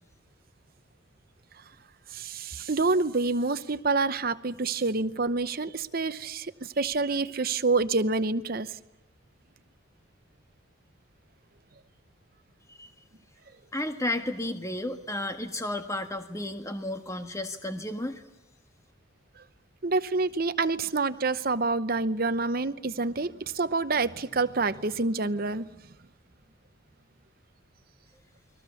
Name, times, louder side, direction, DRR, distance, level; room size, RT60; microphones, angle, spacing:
voice 1, 2.1-8.8 19.8-25.7, right 3 dB, 45° right, 12 dB, 0.8 m, -27 dB
voice 2, 13.7-18.2, left 1 dB, 15° left, 6 dB, 1.6 m, -33 dB
29.5 x 21.5 x 7.1 m, 0.95 s
head